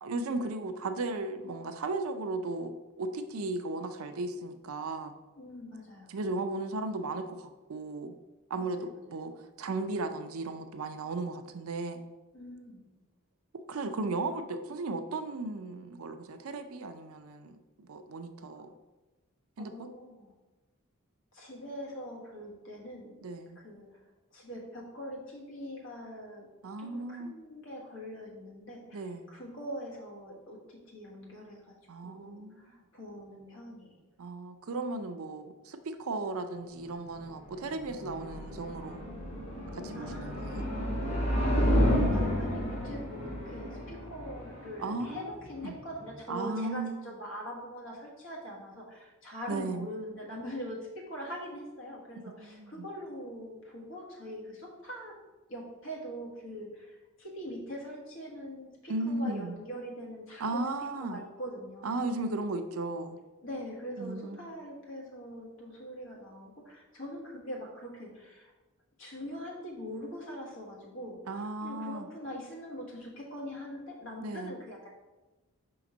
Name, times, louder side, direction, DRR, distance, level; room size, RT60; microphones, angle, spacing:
voice 1, 0.0-5.2 6.1-8.1 8.5-9.3 9.6-12.0 13.7-18.8 19.6-19.9 23.2-23.6 26.6-27.3 28.9-29.3 31.9-32.7 34.2-39.0 39.7-40.7 44.8-45.3 45.6-45.7 46.3-46.9 49.5-49.9 52.2-52.8 58.9-59.5 60.4-61.2 61.8-63.2 64.0-64.4 71.3-72.1 74.2-74.5, right 2 dB, 75° right, 8 dB, 0.5 m, -36 dB
voice 2, 5.3-6.2 8.6-9.2 12.3-13.0 19.6-20.3 21.3-23.2 23.5-24.0 24.3-26.5 26.8-31.7 32.0-34.0 39.9-40.4 41.0-55.1 55.5-60.7 61.0-62.0 63.4-68.5 69.0-74.9, equal, 60° left, -1 dB, 1.5 m, -43 dB
sound 1, 37.2-46.2, equal, 30° left, 1.4 m, -31 dB
5.2 x 3.9 x 5.0 m, 1.1 s
head